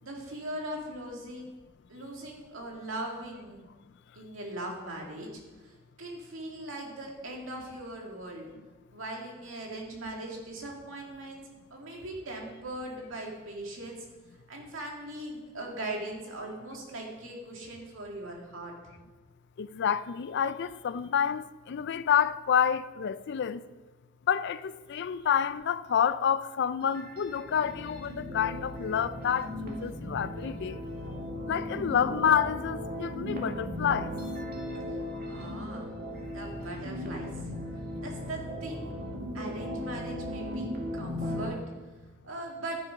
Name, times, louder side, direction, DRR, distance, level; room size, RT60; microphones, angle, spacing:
voice 1, 0.0-1.5 1.9-3.6 4.1-5.7 6.0-8.5 8.9-11.4 11.7-14.0 14.5-18.7 35.3-35.9 36.3-37.5 38.0-38.9 39.3-40.7 40.9-41.6 42.2-42.8, right 1 dB, 75° right, 2.3 m, -40 dB
voice 2, 19.6-23.6 24.3-30.8 31.5-34.1, left 8 dB, 60° left, 0.4 m, -28 dB
sound 1, 26.8-41.5, left 1 dB, 50° right, 2.0 m, -37 dB
12.5 x 6.8 x 5.2 m
head